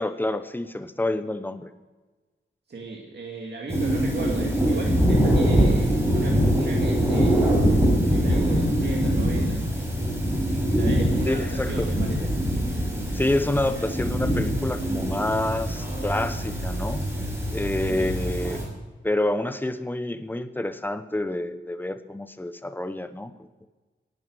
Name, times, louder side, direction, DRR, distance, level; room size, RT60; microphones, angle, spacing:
voice 1, 0.0-1.7 11.2-11.9 13.1-17.1 17.5-18.6 19.0-23.3, left 1 dB, 10° left, 10 dB, 0.9 m, -28 dB
voice 2, 2.7-7.6 8.1-9.6 10.7-12.3 17.9-18.1, right 2 dB, 60° right, -1 dB, 2.2 m, -35 dB
sound 1, 3.7-18.6, equal, 15° right, 5.7 m, -23 dB
18.5 x 11.5 x 6.3 m, 1.3 s
wide cardioid pair, 130°, 19 cm